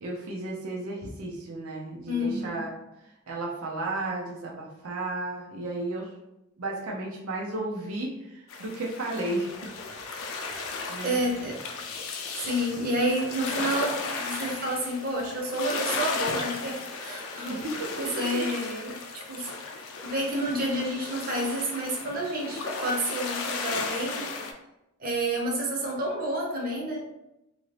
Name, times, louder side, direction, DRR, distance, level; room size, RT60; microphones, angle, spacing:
voice 1, 0.0-2.8 3.3-6.1 6.6-9.5 10.6-11.2 17.5-17.9 19.6-19.8, right 2 dB, 75° right, -2 dB, 0.5 m, -33 dB
voice 2, 2.1-2.6 10.4-10.6 11.0-11.6 12.4-19.0 19.2-19.5 20.0-24.3 25.0-27.0, right 1 dB, 40° right, -2 dB, 0.7 m, -29 dB
sound 1, 8.5-24.5, left 4 dB, 70° left, 0.5 m, -35 dB
2.8 x 2.6 x 3.2 m, 0.90 s
head